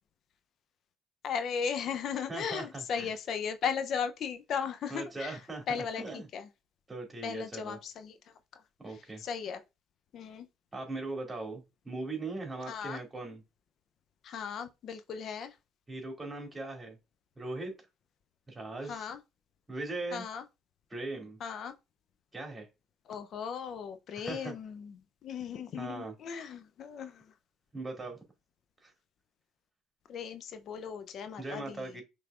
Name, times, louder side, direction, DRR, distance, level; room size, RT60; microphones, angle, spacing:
voice 1, 1.2-5.4 5.7-6.5 7.2-8.2 8.5-8.6 8.9-9.6 10.1-10.5 12.6-13.0 14.2-15.6 18.8-19.2 20.1-20.4 21.4-21.7 23.1-27.3 30.1-32.0, left 7 dB, 55° left, 0.6 m, -37 dB
voice 2, 2.3-3.1 4.9-5.6 6.0-6.3 6.9-7.8 8.8-9.2 10.7-13.4 15.9-17.0 17.4-17.8 18.5-19.1 19.7-20.3 20.9-21.4 22.3-22.7 24.2-24.5 25.8-26.1 27.7-28.2 28.8-28.9 31.4-32.0, right 2 dB, 20° right, 2.4 m, -39 dB
5.7 x 3.4 x 2.4 m
hypercardioid pair, 55°, 0 cm